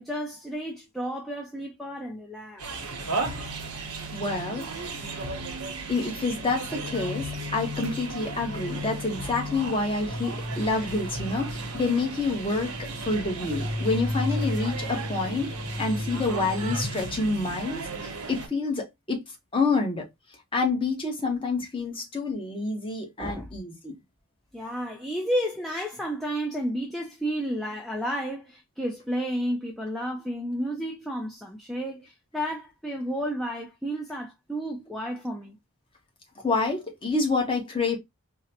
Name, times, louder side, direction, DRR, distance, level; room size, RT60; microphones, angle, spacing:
voice 1, 0.0-2.9 23.2-23.5 24.5-35.6, equal, ahead, 0.3 m, -32 dB
sound 1, 2.6-18.5, right 1 dB, 90° right, 0.8 m, -33 dB
voice 2, 4.1-5.1 5.9-15.5 15.8-17.9 18.3-19.2 19.5-20.1 20.5-23.9 36.4-38.0, left 3 dB, 25° left, 0.8 m, -28 dB
3.7 x 2.0 x 2.7 m
head